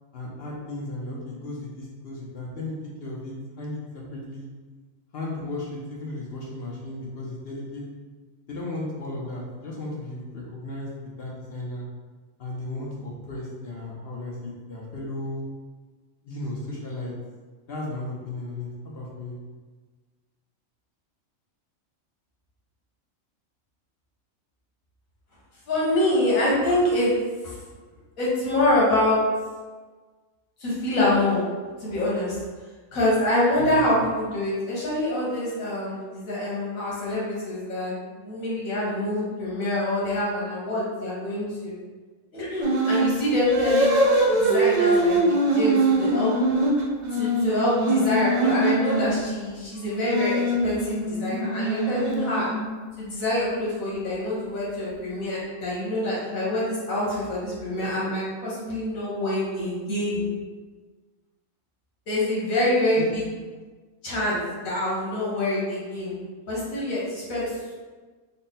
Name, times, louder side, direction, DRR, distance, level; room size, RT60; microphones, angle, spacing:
voice 1, 0.1-3.8 4.1-4.5 5.1-7.8 8.5-11.8 12.4-15.4 16.2-17.1 17.7-19.4 33.6-34.0 63.0-63.1, left 2 dB, 55° left, -3 dB, 0.8 m, -35 dB
voice 2, 25.7-27.1 27.4-27.6 28.2-29.2 30.6-31.4 31.8-32.4 32.9-41.7 42.3-44.0 44.3-46.3 47.1-52.5 53.0-60.2 62.1-63.2 64.0-66.1 66.5-67.7, left 1 dB, 80° left, -7 dB, 1.6 m, -25 dB
sound 1, 42.6-43.1 43.5-49.1 49.8-52.8, right 2 dB, 60° right, 0.4 m, -23 dB
3.5 x 2.1 x 4.0 m, 1.4 s
omnidirectional pair, 1.4 m